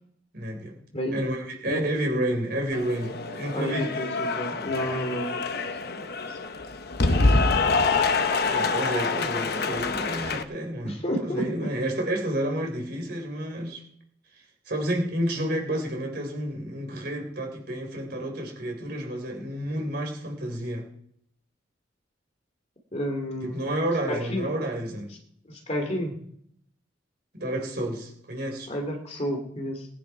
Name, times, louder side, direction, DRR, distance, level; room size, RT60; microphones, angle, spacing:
voice 1, 0.3-0.8 1.1-3.9 7.1-7.7 8.5-13.8 14.7-20.9 23.4-25.1 27.3-28.7, right 1 dB, 55° right, 2 dB, 3.6 m, -30 dB
Cheering / Applause, 2.7-10.4, left 3 dB, 55° left, 0.9 m, -26 dB
voice 2, 3.5-5.7 5.9-6.0 6.3-6.4 10.8-11.5 22.9-23.6 24.1-24.5 25.4-26.1 28.7-29.9, equal, 35° left, 3 dB, 2.5 m, -31 dB
19.5 x 10.0 x 4.6 m, 0.69 s
head